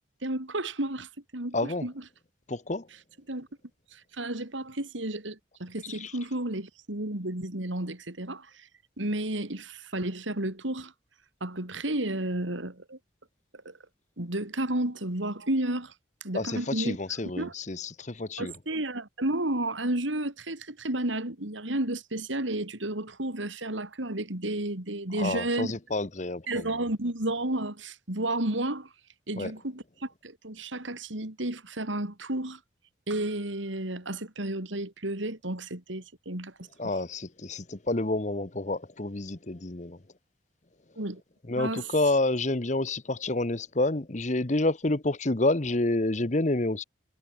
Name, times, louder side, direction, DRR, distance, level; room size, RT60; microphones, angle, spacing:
voice 1, 0.2-2.0 3.3-3.5 3.9-8.7 9.0-10.9 11.4-13.0 13.7-13.8 14.2-15.9 16.2-17.0 17.4-17.5 18.4-25.8 26.5-28.9 29.3-32.6 33.1-36.5 36.8-36.9 41.0-41.2 41.6-41.9, right 1 dB, 85° right, 3.6 m, -32 dB
voice 2, 1.5-1.9 2.5-2.9 6.0-6.1 16.3-18.5 25.2-26.7 29.4-29.5 36.8-40.0 41.5-46.8, left 2 dB, 40° left, 1.1 m, -29 dB
head